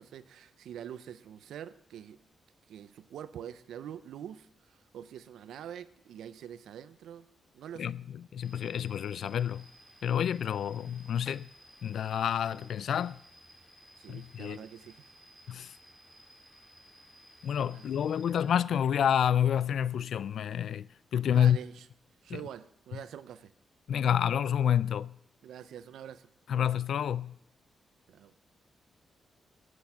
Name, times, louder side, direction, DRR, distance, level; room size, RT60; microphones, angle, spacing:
voice 1, 0.0-2.2 2.7-7.3 7.5-8.0 14.0-15.1 17.7-18.4 21.2-21.9 22.2-23.5 25.4-26.3 28.1-28.3, right 9 dB, 90° right, 0.5 m, -45 dB
voice 2, 8.3-9.7 10.0-11.5 11.8-13.2 14.1-14.6 15.5-15.7 17.4-20.9 21.1-21.6 22.3-22.4 23.9-25.2 26.5-27.3, left 9 dB, 70° left, 0.3 m, -28 dB
sound 1, 8.4-18.4, equal, ahead, 2.2 m, -57 dB
10.5 x 8.0 x 5.6 m
cardioid pair, 105°, 0 cm